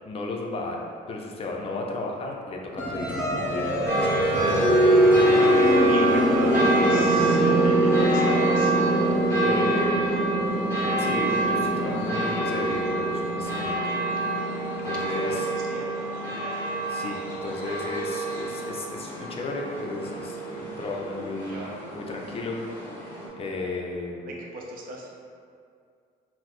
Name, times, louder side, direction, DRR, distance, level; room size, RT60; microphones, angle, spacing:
voice 1, 0.0-0.8 1.1-4.6 9.4-10.0 11.0-13.8 14.8-15.5 16.9-23.0 23.4-24.3, left 2 dB, 35° left, 0 dB, 0.5 m, -34 dB
sound 1, 2.8-15.3, equal, 10° right, 1.1 m, -24 dB
sound 2, 3.9-23.3, right 3 dB, 15° left, 1.1 m, -27 dB
voice 2, 4.8-5.2 5.5-8.8 9.6-10.0 15.0-16.6 21.5-21.8 24.2-25.1, right 2 dB, 55° right, -2 dB, 0.6 m, -37 dB
3.8 x 2.0 x 3.0 m, 2.3 s
cardioid pair, 110°, 17 cm